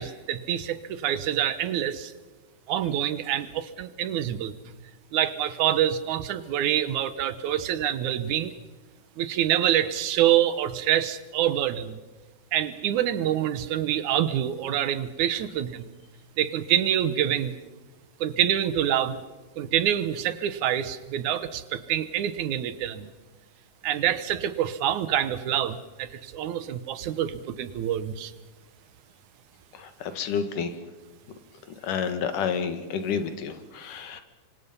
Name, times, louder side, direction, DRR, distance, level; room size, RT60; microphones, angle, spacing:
voice 1, 0.0-2.1 2.7-4.5 5.1-8.5 9.2-12.0 12.5-15.9 16.4-17.6 18.2-19.2 19.6-23.1 23.8-28.3, right 11 dB, 75° right, 14 dB, 2.4 m, -26 dB
voice 2, 29.7-30.7 31.8-34.2, left 6 dB, 85° left, 9 dB, 3.2 m, -30 dB
26.5 x 24.0 x 5.6 m, 1.2 s
omnidirectional pair, 3.6 m